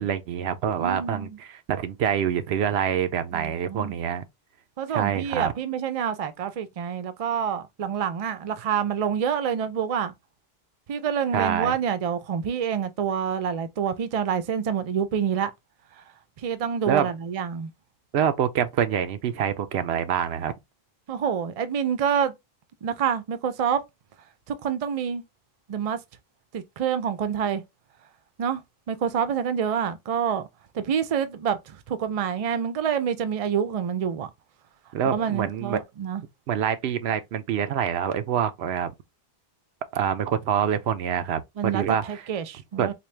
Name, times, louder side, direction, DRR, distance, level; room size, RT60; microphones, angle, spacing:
voice 1, 0.0-4.2 4.9-5.5 11.3-11.8 16.9-17.1 18.1-20.5 34.9-35.8 36.5-38.9 39.9-42.2 42.8-42.9, right 8 dB, 85° right, 0.8 m, -26 dB
voice 2, 0.8-1.4 3.3-3.9 4.8-10.1 10.9-15.5 16.4-17.7 21.1-22.3 22.8-23.8 24.5-25.2 25.7-26.0 26.5-27.6 28.4-28.6 28.9-30.5 30.7-34.3 35.1-36.2 41.6-42.9, right 8 dB, 45° right, 0.5 m, -27 dB
4.2 x 2.2 x 3.2 m
omnidirectional pair, 1.0 m